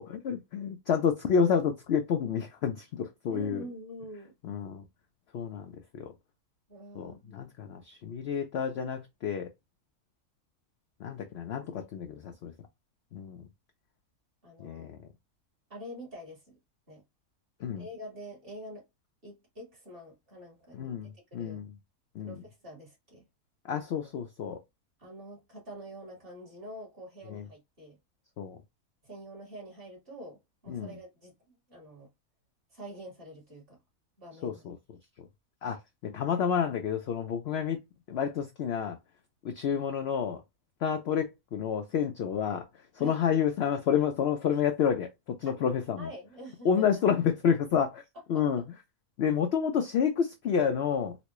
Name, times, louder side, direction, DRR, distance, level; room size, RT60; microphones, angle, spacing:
voice 1, 0.0-3.6 4.4-4.8 5.3-6.1 6.9-9.5 11.0-12.5 13.1-13.5 14.6-15.0 17.6-17.8 20.7-21.7 22.1-22.4 23.6-24.6 27.3-27.4 28.4-28.6 30.7-30.9 34.4-34.8 35.6-37.8 38.1-39.0 39.4-40.4 40.8-42.6 43.0-46.1 46.6-48.0 48.3-48.6 49.2-51.2, left 7 dB, 70° left, 0.6 m, -29 dB
voice 2, 3.3-4.3 6.7-7.3 14.4-14.9 15.7-16.5 16.9-17.0 17.8-18.9 19.2-21.6 22.2-23.3 25.0-28.0 29.0-32.1 32.7-33.8 34.2-34.6 43.0-43.2 45.5-46.9 48.3-48.7, right 1 dB, 40° right, 2.0 m, -46 dB
4.1 x 2.1 x 2.9 m
omnidirectional pair, 1.6 m